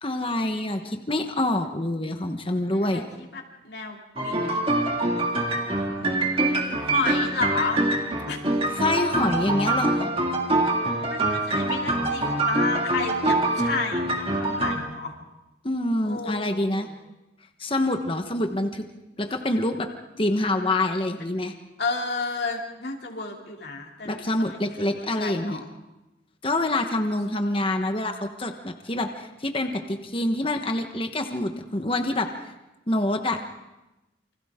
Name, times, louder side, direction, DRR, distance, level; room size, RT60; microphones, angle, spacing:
voice 1, 0.0-3.0 8.7-10.1 15.6-16.9 17.6-18.9 19.2-19.9 20.2-21.5 24.0-25.6 26.4-32.5 32.9-33.4, left 1 dB, 30° left, 5 dB, 1.2 m, -26 dB
voice 2, 2.7-4.6 5.0-7.8 8.3-8.4 11.1-15.1 16.0-16.9 21.8-25.7, left 3 dB, 60° left, 0 dB, 2.9 m, -32 dB
sound 1, 4.2-14.8, right 2 dB, 30° right, 2.2 m, -25 dB
28.5 x 24.5 x 3.7 m, 1.0 s
head